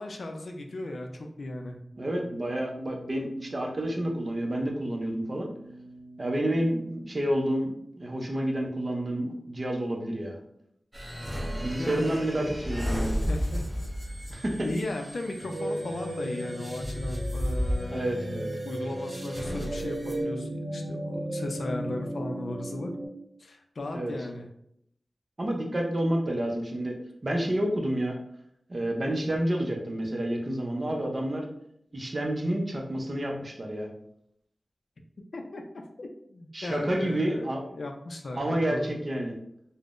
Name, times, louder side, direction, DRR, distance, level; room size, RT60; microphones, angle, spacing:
voice 1, 0.0-1.8 11.8-12.5 13.0-13.6 14.6-18.2 18.6-22.9 23.4-24.5 35.3-38.4 38.7-38.8, left 1 dB, 70° left, 3 dB, 0.4 m, -36 dB
sound 1, 1.9-7.1, right 1 dB, ahead, 1.5 m, -49 dB
voice 2, 2.0-5.5 6.2-10.4 11.6-13.2 14.3-14.7 17.9-18.5 23.9-24.1 25.4-26.9 27.2-28.2 28.7-31.5 31.9-33.9 36.5-37.6 38.3-39.3, right 1 dB, 40° right, 1 dB, 0.5 m, -29 dB
sound 2, 10.9-20.2, equal, 15° right, 0.8 m, -34 dB
sound 3, 15.4-23.1, right 1 dB, 75° right, 0.8 m, -35 dB
3.5 x 2.0 x 2.4 m, 0.74 s
wide cardioid pair, 105°, 0 cm